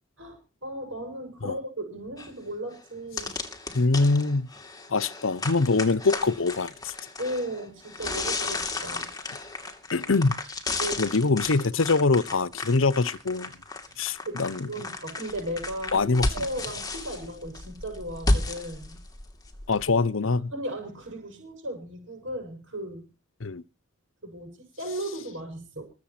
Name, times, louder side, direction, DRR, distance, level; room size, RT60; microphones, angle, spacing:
voice 1, 0.2-3.4 7.2-9.1 10.8-11.0 13.9-14.0 14.2-19.0 20.5-23.1 24.2-25.8, right 1 dB, 70° right, 6.7 m, -36 dB
sound 1, 2.2-2.3 2.8-2.9 3.2-20.0, left 2 dB, 20° left, 2.7 m, -33 dB
voice 2, 3.7-4.5 4.9-6.9 9.9-10.4 11.0-13.5 14.0-14.7 15.9-16.5 19.7-20.5 23.4-23.6, left 3 dB, 75° left, 0.8 m, -24 dB
22.0 x 8.1 x 5.9 m
head